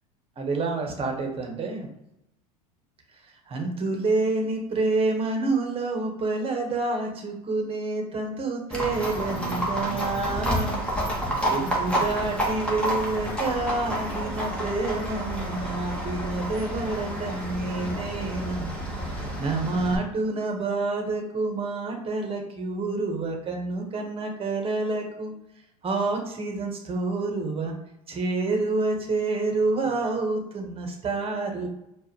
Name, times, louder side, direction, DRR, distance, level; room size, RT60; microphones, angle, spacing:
voice 1, 0.4-1.9 3.5-10.8 11.1-18.7 19.1-25.3 25.8-27.7 28.1-31.7, right 3 dB, 30° right, 2 dB, 1.3 m, -28 dB
Livestock farm animals working animals, 8.7-20.0, equal, 5° left, 1.5 m, -29 dB
4.6 x 2.6 x 3.1 m, 0.82 s
hypercardioid pair, 90°, 20 cm